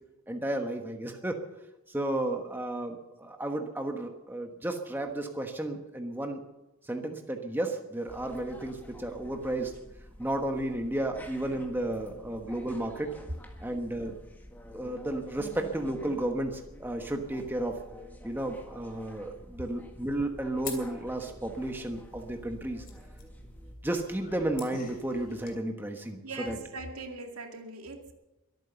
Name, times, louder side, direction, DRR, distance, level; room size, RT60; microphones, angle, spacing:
voice 1, 0.3-1.4 1.9-6.4 6.8-9.7 10.2-13.1 13.6-14.2 14.7-17.8 18.2-22.8 23.8-26.6, right 1 dB, 10° right, 4 dB, 1.1 m, -33 dB
sound 1, 8.1-23.8, equal, 10° left, 1.6 m, -49 dB
sound 2, 20.6-25.6, left 5 dB, 40° left, 3.0 m, -47 dB
voice 2, 26.2-28.1, right 2 dB, 80° right, 4 dB, 2.3 m, -40 dB
22.5 x 9.2 x 6.9 m, 0.99 s
head